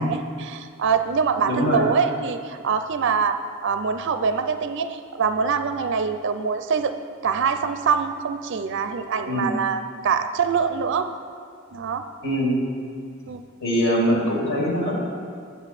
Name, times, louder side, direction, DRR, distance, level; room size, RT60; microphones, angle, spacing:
voice 1, 0.0-6.9 7.2-11.1 11.7-12.0 13.3-13.4, right 6 dB, 60° right, 9 dB, 0.4 m, -24 dB
voice 2, 1.4-1.9 9.3-9.6 12.2-12.6 13.6-15.0, equal, 60° left, -2 dB, 2.3 m, -22 dB
9.0 x 8.2 x 4.2 m, 2.3 s
head